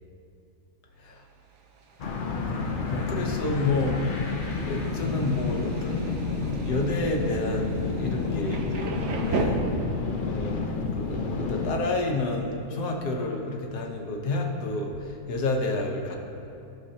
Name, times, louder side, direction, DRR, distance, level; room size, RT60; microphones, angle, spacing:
Thunder, 1.3-9.4, right 5 dB, 80° right, 1.4 m, -39 dB
sound 1, 2.0-11.7, left 4 dB, 55° left, 0.6 m, -30 dB
voice 1, 2.9-4.0 4.6-6.2 6.6-9.6 10.2-10.6 10.9-16.2, left 2 dB, 80° left, 1 dB, 1.5 m, -29 dB
15.0 x 6.4 x 2.8 m, 2.7 s
omnidirectional pair, 1.7 m